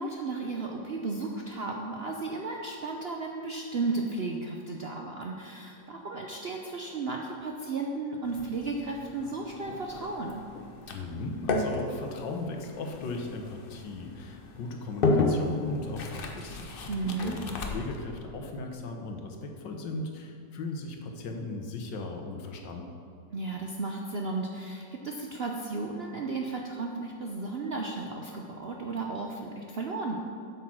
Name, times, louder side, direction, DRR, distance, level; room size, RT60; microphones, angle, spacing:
voice 1, 0.0-10.4 16.9-17.4 23.3-30.2, right 3 dB, 60° right, 0 dB, 0.6 m, -34 dB
sound 1, 8.2-18.0, left 3 dB, 50° left, 0.7 m, -33 dB
voice 2, 10.9-16.9 17.2-22.9, left 3 dB, 90° left, 3 dB, 1.7 m, -37 dB
8.0 x 7.1 x 6.1 m, 2.5 s
omnidirectional pair, 1.9 m